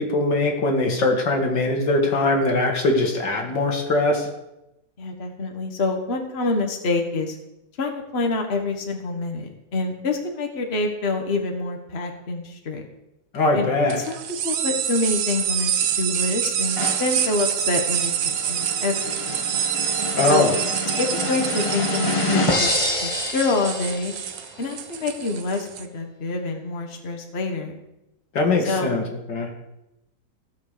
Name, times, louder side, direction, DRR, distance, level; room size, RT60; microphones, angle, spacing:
voice 1, 0.0-4.3 13.3-14.0 20.2-20.5 28.3-29.0 29.3-29.5, left 2 dB, 80° left, 2 dB, 2.6 m, -21 dB
voice 2, 5.0-7.4 7.8-12.8 13.5-13.7 14.0-14.2 14.4-15.7 16.0-19.6 20.3-20.5 21.0-24.1 24.6-27.8 28.7-28.9, left 3 dB, 35° left, 3 dB, 1.6 m, -26 dB
sound 1, 13.9-25.8, right 9 dB, 90° right, 1.5 m, -26 dB
sound 2, 16.8-24.3, left 1 dB, 20° left, 1.1 m, -28 dB
15.0 x 7.3 x 6.8 m, 0.92 s
omnidirectional pair, 1.9 m